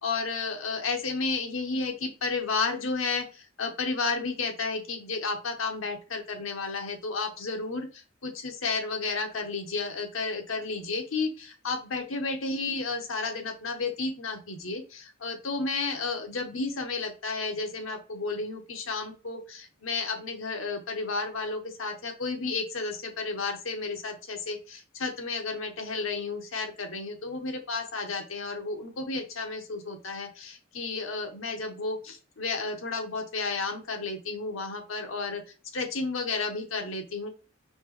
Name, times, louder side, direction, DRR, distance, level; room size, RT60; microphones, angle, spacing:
voice 1, 0.0-35.4 35.7-37.3, left 4 dB, 80° left, 5 dB, 1.0 m, -32 dB
4.4 x 2.9 x 3.0 m, 0.32 s
head